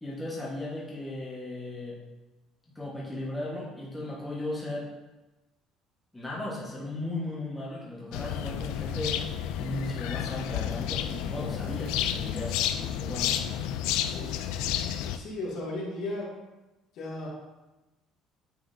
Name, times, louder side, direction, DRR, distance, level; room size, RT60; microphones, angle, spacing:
voice 1, 0.0-2.0 2.7-4.9 6.1-13.4, left 1 dB, 10° left, -6 dB, 1.3 m, -36 dB
sound 1, 8.1-15.2, left 10 dB, 85° left, 0.4 m, -31 dB
voice 2, 15.1-16.3 16.9-17.3, left 2 dB, 65° left, -5 dB, 2.3 m, -35 dB
8.9 x 4.9 x 2.7 m, 1.1 s
cardioid pair, 140°, 0 cm